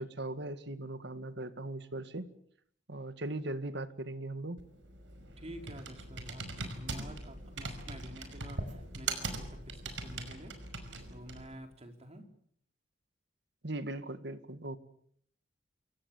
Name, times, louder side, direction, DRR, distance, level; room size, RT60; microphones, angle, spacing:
voice 1, 0.0-2.3 2.9-4.6 13.6-14.8, right 2 dB, 65° right, 11 dB, 1.9 m, -39 dB
Computer keyboard, 4.6-11.6, right 3 dB, 90° right, 5.4 m, -41 dB
voice 2, 5.4-10.5 11.1-12.3, right 1 dB, 35° right, 5 dB, 4.4 m, -49 dB
28.0 x 24.0 x 7.2 m, 0.65 s
head